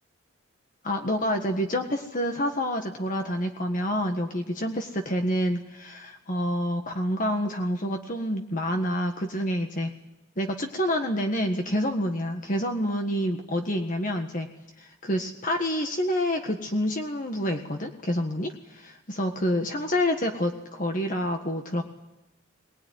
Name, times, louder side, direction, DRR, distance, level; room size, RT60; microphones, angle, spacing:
voice 1, 0.8-9.9 10.4-14.5 14.8-21.8, equal, 40° left, 4 dB, 1.7 m, -28 dB
23.0 x 19.5 x 9.6 m, 0.95 s
head